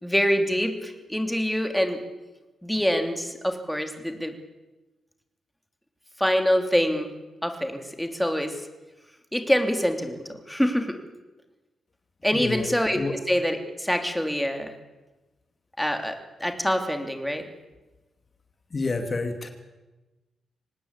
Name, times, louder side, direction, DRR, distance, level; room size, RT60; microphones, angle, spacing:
voice 1, 0.0-2.0 2.6-4.3 6.2-7.1 7.4-8.6 9.3-11.0 12.2-14.7 15.8-17.4, equal, 5° left, 5 dB, 3.1 m, -25 dB
voice 2, 12.3-12.7 12.9-13.1 18.7-19.5, left 3 dB, 35° left, 6 dB, 2.7 m, -28 dB
25.0 x 19.0 x 8.4 m, 1.1 s
cardioid pair, 95°, 0 cm